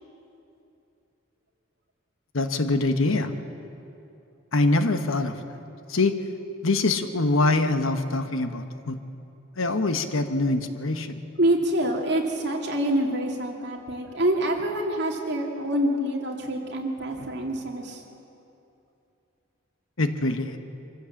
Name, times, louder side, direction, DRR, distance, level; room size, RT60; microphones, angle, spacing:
voice 1, 2.3-3.3 4.5-5.6 5.9-6.2 6.6-9.0 9.6-11.2 20.0-20.6, left 2 dB, 75° left, 8 dB, 1.2 m, -24 dB
voice 2, 11.4-18.0, right 1 dB, 50° right, 0 dB, 2.5 m, -26 dB
24.5 x 15.0 x 7.2 m, 2.8 s
head